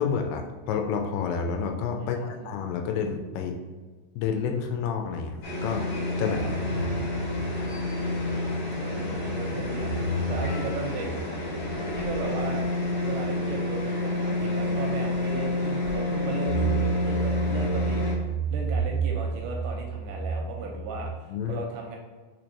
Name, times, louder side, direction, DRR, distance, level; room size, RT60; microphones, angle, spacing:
voice 1, 0.0-3.6 4.2-5.8 6.2-6.4 6.7-7.0 21.3-21.7, left 6 dB, 85° left, 4 dB, 2.2 m, -29 dB
voice 2, 2.0-2.5 6.2-7.2 8.7-11.1 11.9-12.7 13.0-18.1 18.5-22.0, right 4 dB, 80° right, 0 dB, 2.0 m, -36 dB
sound 1, 5.4-18.1, left 2 dB, 50° left, 1.2 m, -29 dB
sound 2, 5.7-14.2 14.6-14.7 16.4-21.1, right 4 dB, 55° right, 1.0 m, -32 dB
4.5 x 4.4 x 2.6 m, 1.4 s
omnidirectional pair, 4.0 m